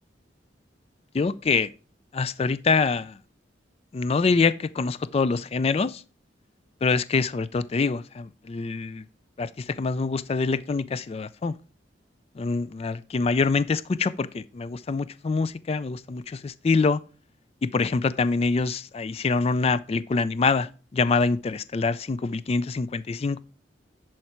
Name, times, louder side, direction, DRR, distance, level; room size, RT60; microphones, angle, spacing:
voice 1, 1.1-1.7 2.1-3.2 3.9-6.0 6.8-9.0 9.4-11.5 12.4-17.0 17.6-23.4, left 4 dB, 35° left, 0.3 m, -25 dB
10.5 x 4.7 x 4.4 m
head